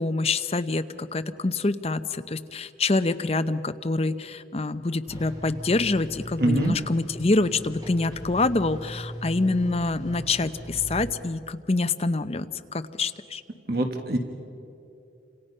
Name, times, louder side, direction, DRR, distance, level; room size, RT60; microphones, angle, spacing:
voice 1, 0.0-12.5 12.7-13.4, left 3 dB, 35° left, 10 dB, 0.7 m, -26 dB
sound 1, 5.1-11.1, equal, 20° right, 4.1 m, -39 dB
voice 2, 6.4-6.8 13.7-14.2, right 1 dB, 55° right, 4 dB, 1.5 m, -24 dB
29.0 x 27.0 x 5.5 m, 2.8 s
head